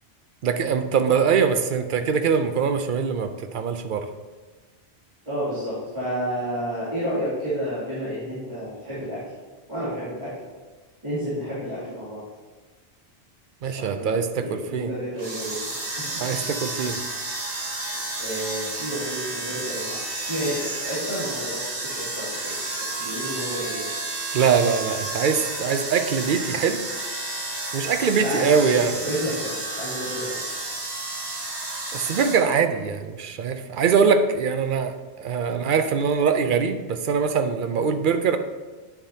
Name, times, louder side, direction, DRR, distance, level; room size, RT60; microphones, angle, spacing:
voice 1, 0.4-4.1 13.6-14.9 16.2-17.0 24.3-26.8 27.7-29.1 31.9-38.4, right 6 dB, 60° right, 8 dB, 0.6 m, -23 dB
voice 2, 5.2-9.2 9.7-10.3 11.0-12.2 13.6-15.6 18.2-23.8 28.2-28.7 29.0-30.4 35.4-35.5 37.7-37.8, equal, 25° right, -13 dB, 2.6 m, -31 dB
sound 1, 15.2-32.4, right 2 dB, 85° right, 1.7 m, -31 dB
9.3 x 7.1 x 2.7 m, 1.3 s
omnidirectional pair, 1.1 m